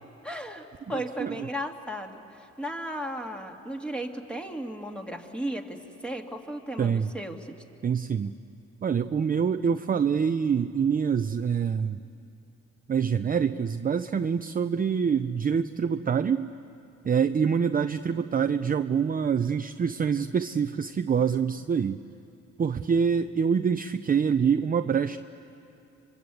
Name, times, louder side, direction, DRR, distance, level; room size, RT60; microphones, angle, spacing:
voice 1, 0.2-5.8 6.0-7.6, right 1 dB, 5° left, 3 dB, 2.2 m, -35 dB
voice 2, 0.9-1.5 6.8-7.1 7.8-8.4 8.8-12.0 12.9-16.5 17.0-22.0 22.6-25.2, right 6 dB, 30° right, 9 dB, 0.5 m, -25 dB
26.5 x 23.5 x 8.4 m, 2.8 s
cardioid pair, 90°, 30 cm